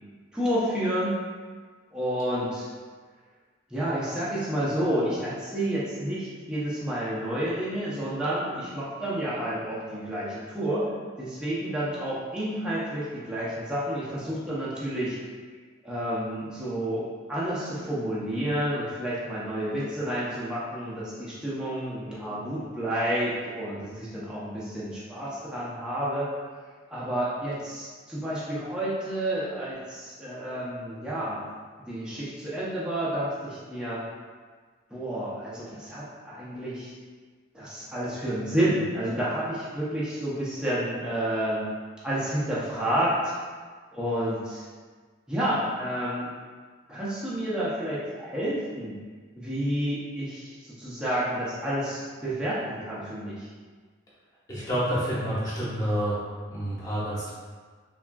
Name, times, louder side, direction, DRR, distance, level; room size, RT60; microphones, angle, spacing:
voice 1, 0.3-1.2 1.9-2.7 3.7-15.2 15.8-17.0 17.3-26.3 26.9-31.4 31.9-34.0 34.9-36.9 37.5-41.7 42.0-43.3 43.9-44.6 45.3-46.3 46.9-48.9 49.3-50.5 50.8-53.5, right 1 dB, 5° right, -9 dB, 0.5 m, -30 dB
voice 2, 54.5-56.2 56.5-57.3, equal, 15° left, -9 dB, 0.9 m, -28 dB
3.4 x 2.3 x 2.2 m, 1.5 s
head